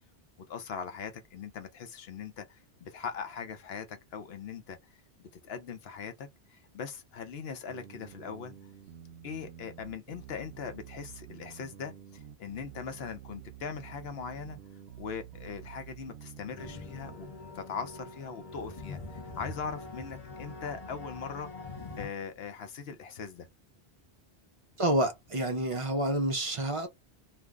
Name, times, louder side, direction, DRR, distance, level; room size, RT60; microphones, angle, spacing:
voice 1, 0.5-4.9 5.2-8.5 9.2-14.6 15.0-17.3 17.5-21.6 22.0-23.5, left 6 dB, 70° left, 0.9 m, -40 dB
sound 1, 7.7-17.2, right 10 dB, 70° right, 0.8 m, -49 dB
sound 2, 16.6-22.1, left 3 dB, 40° left, 0.8 m, -44 dB
voice 2, 24.8-26.9, right 1 dB, 45° right, 0.4 m, -28 dB
2.5 x 2.0 x 3.5 m
omnidirectional pair, 1.1 m